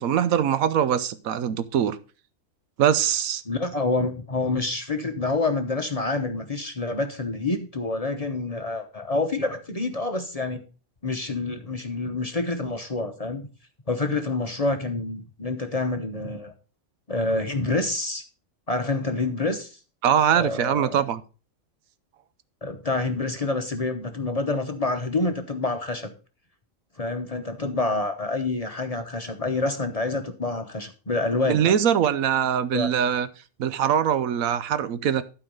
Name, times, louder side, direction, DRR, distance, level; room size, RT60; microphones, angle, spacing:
voice 1, 0.0-2.0 2.8-3.4 20.0-21.2 31.5-33.3 33.6-35.2, right 9 dB, 80° right, 1.1 m, -22 dB
voice 2, 3.5-10.6 11.0-13.5 13.9-16.5 17.1-18.2 18.7-19.8 20.3-21.0 22.6-26.1 27.0-31.7 32.7-32.9, left 2 dB, 30° left, 0.9 m, -27 dB
12.0 x 4.8 x 5.2 m
omnidirectional pair, 1.4 m